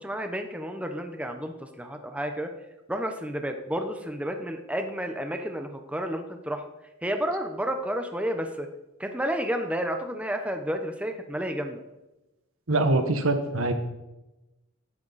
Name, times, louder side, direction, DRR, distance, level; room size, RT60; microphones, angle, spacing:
voice 1, 0.0-2.5 2.9-6.6 7.0-8.7 9.0-11.8, equal, 5° right, 5 dB, 0.9 m, -31 dB
voice 2, 12.7-13.7, right 2 dB, 70° right, 8 dB, 1.4 m, -23 dB
16.5 x 11.5 x 4.2 m, 1.0 s
head